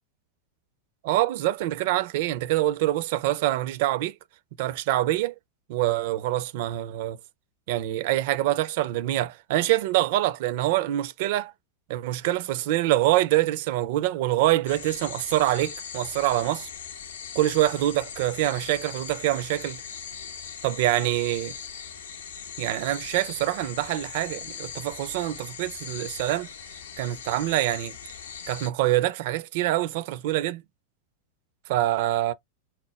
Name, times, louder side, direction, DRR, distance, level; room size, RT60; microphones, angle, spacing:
voice 1, 1.0-4.2 4.6-5.4 5.7-7.2 7.7-11.5 11.9-16.7 17.4-19.8 20.6-21.5 22.6-26.5 27.0-28.0 28.5-30.6 31.7-32.3, right 15 dB, 50° right, 0.4 m, -25 dB
sound 1, 14.7-28.7, left 7 dB, 65° left, 0.6 m, -40 dB
4.3 x 2.1 x 3.1 m
figure-of-eight pair, 90°, 0 cm